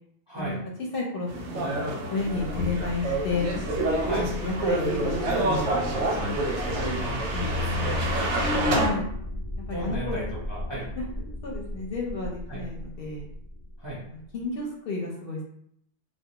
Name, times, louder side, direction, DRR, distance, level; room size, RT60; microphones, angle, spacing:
voice 1, 0.3-0.6 4.0-4.3 7.0-8.1 9.7-10.9 12.5-12.6 13.8-14.0, right 1 dB, 30° right, -7 dB, 0.5 m, -35 dB
voice 2, 0.9-1.7 2.1-3.5 4.2-6.4 7.3-9.1 9.7-10.2 11.0-13.3 14.1-15.4, left 3 dB, 65° left, -1 dB, 0.7 m, -32 dB
sound 1, 1.3-8.9, right 1 dB, 85° right, 0.9 m, -27 dB
sound 2, 2.2-14.4, left 1 dB, 10° left, 0.7 m, -37 dB
2.3 x 2.0 x 2.8 m, 0.71 s
omnidirectional pair, 1.2 m